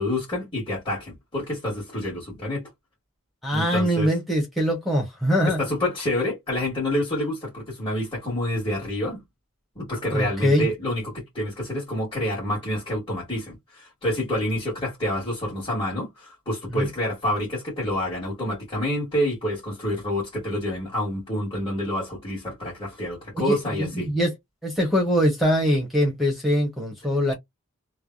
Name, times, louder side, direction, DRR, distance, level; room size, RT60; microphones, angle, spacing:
voice 1, 0.0-2.7 3.5-4.1 5.6-9.2 9.7-24.1, left 1 dB, 20° left, 1.6 m, -28 dB
voice 2, 3.4-5.6 10.1-10.7 16.7-16.9 23.3-24.3 24.6-27.3, equal, ahead, 0.9 m, -23 dB
3.2 x 2.0 x 2.4 m
head